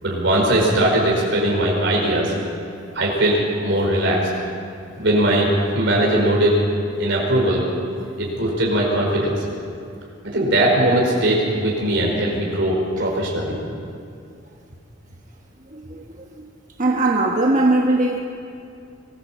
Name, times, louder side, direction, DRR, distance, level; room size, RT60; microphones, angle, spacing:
voice 1, 0.0-2.3 2.9-4.3 5.0-6.6 7.0-7.6 8.2-9.4 10.3-13.6, right 1 dB, 70° right, -2 dB, 4.9 m, -19 dB
voice 2, 15.7-16.5 16.8-18.2, right 2 dB, 40° right, 1 dB, 1.2 m, -20 dB
23.0 x 15.5 x 7.3 m, 2.4 s
head